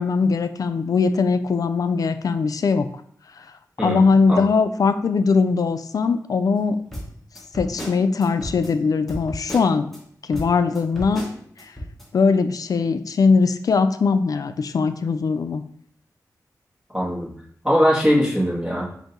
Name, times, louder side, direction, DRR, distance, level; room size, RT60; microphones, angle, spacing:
voice 1, 0.0-2.9 3.8-6.8 7.5-9.9 10.3-11.2 12.1-15.6, left 4 dB, 65° left, 10 dB, 0.4 m, -20 dB
voice 2, 3.8-4.5 16.9-17.3 17.6-18.9, equal, 10° right, -4 dB, 1.5 m, -21 dB
sound 1, 6.9-10.0 10.3-12.0, equal, 5° left, 1.4 m, -34 dB
5.0 x 2.6 x 4.0 m, 0.63 s
wide cardioid pair, 85°, 6 cm